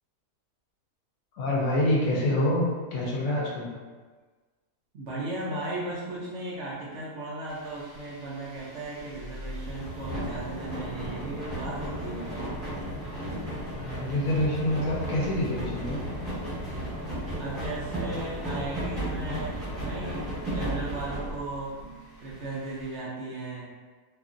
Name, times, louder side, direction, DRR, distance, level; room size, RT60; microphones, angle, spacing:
voice 1, 1.3-2.7 2.9-3.7 13.8-16.0, left 1 dB, 70° left, -4 dB, 0.9 m, -26 dB
voice 2, 4.9-12.6 17.4-23.7, right 2 dB, 75° right, -6 dB, 0.6 m, -36 dB
sound 1, 7.5-23.0, right 1 dB, ahead, 0.9 m, -35 dB
2.8 x 2.4 x 2.4 m, 1.4 s
omnidirectional pair, 1.7 m